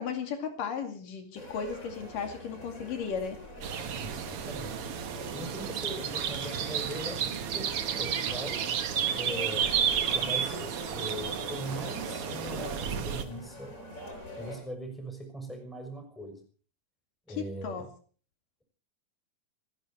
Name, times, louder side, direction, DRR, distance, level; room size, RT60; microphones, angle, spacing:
voice 1, 0.0-3.4 3.7-3.9 17.3-17.8, left 6 dB, 85° left, 6 dB, 4.0 m, -35 dB
sound 1, 1.3-14.6, left 1 dB, 25° left, 7.2 m, -44 dB
sound 2, 3.6-13.2, right 8 dB, 55° right, 1.8 m, -32 dB
voice 2, 4.0-4.8 5.3-8.6 9.2-13.7 14.4-16.4 17.3-17.9, equal, ahead, 4 dB, 5.8 m, -41 dB
29.0 x 11.0 x 4.4 m, 0.42 s
omnidirectional pair, 3.7 m